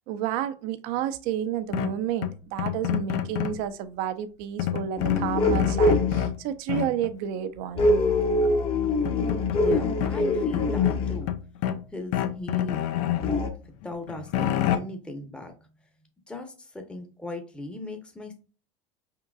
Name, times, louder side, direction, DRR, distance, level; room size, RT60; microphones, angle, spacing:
voice 1, 0.1-7.9, right 10 dB, 65° right, 0.5 m, -30 dB
sound 1, 1.7-3.7 4.6-6.4 6.7-7.1 8.4-8.5 8.8-10.1 10.5-11.8 12.1-13.4 13.8-14.8, left 11 dB, 70° left, 0.5 m, -28 dB
sound 2, 5.0-6.3 7.8-11.3 13.2-13.5, left 2 dB, 35° left, 0.9 m, -24 dB
voice 2, 9.5-11.3 11.9-12.8 13.8-15.5 16.3-18.3, left 2 dB, 5° left, 0.8 m, -38 dB
4.4 x 3.7 x 2.3 m
hypercardioid pair, 90°, 16 cm